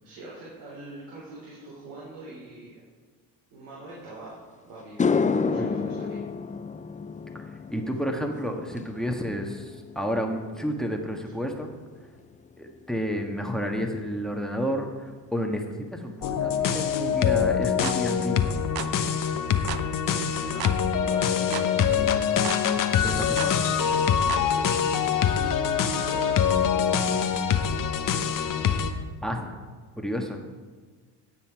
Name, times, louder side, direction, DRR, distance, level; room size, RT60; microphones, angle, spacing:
voice 1, 0.0-2.8 3.5-6.2 20.0-20.7 21.1-22.1 23.1-24.9 26.1-27.0, right 2 dB, 75° right, -6 dB, 3.6 m, -44 dB
sound 1, 4.3-4.4 4.8-13.3 13.6-14.0 17.6-17.7 19.4-19.5 19.8-19.9 20.2-20.7, left 5 dB, 15° left, 0.5 m, -31 dB
voice 2, 7.7-11.7 12.6-15.6 15.9-18.5 23.0-23.6 29.2-29.5 30.0-30.4, equal, ahead, 3 dB, 1.5 m, -31 dB
sound 2, 16.2-28.9, left 7 dB, 45° left, 1.0 m, -24 dB
sound 3, 17.8-18.0 18.8-18.9 19.7-19.9 20.6-20.8 21.5-21.7 22.4-22.6 23.4-23.6 24.3-24.5, right 11 dB, 55° right, 0.8 m, -34 dB
16.5 x 5.8 x 4.7 m, 1.5 s
supercardioid pair, 80°, 45 cm